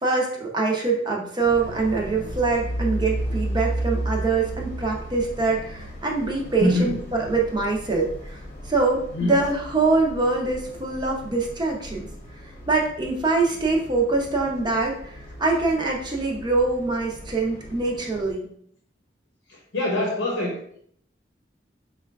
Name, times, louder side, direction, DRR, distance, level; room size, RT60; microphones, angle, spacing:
voice 1, 0.0-8.4 8.6-12.1 12.4-18.5, right 3 dB, 25° right, -1 dB, 0.6 m, -24 dB
sound 1, 1.4-18.3, right 1 dB, 45° left, 0.8 m, -35 dB
voice 2, 6.6-7.0 9.2-9.3 19.7-20.6, left 1 dB, 90° left, -2 dB, 0.7 m, -23 dB
4.7 x 2.3 x 2.3 m, 0.65 s
head